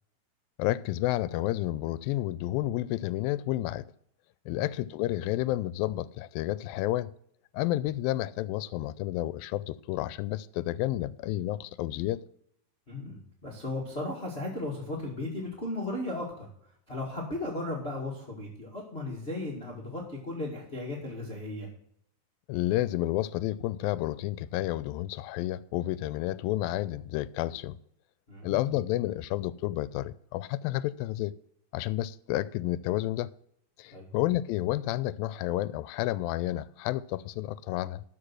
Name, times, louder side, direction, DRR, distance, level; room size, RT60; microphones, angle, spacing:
voice 1, 0.6-3.9 4.5-7.1 7.5-12.3 22.5-27.8 28.4-31.4 31.7-33.3 33.8-38.0, left 15 dB, 90° left, 2.3 m, -30 dB
voice 2, 12.9-16.5 16.9-21.7 28.3-28.7 33.9-34.1, left 2 dB, 25° left, 1.6 m, -36 dB
13.0 x 5.3 x 6.0 m
omnidirectional pair, 4.0 m